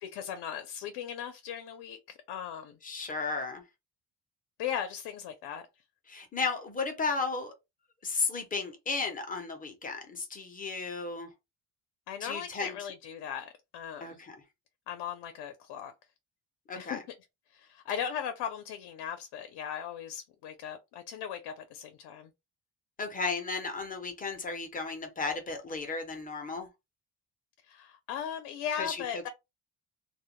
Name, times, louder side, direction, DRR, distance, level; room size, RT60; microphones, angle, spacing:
voice 1, 0.0-2.8 4.6-5.6 12.1-14.2 14.9-15.9 16.7-17.0 17.5-22.3 27.6-29.3, left 8 dB, 90° left, 0.5 m, -38 dB
voice 2, 2.8-3.6 6.1-7.5 8.0-11.3 12.2-12.7 14.0-14.4 16.7-17.0 23.0-26.7 28.8-29.0, left 4 dB, 25° left, 0.4 m, -34 dB
2.1 x 2.1 x 2.9 m
cardioid pair, 175°, 39 cm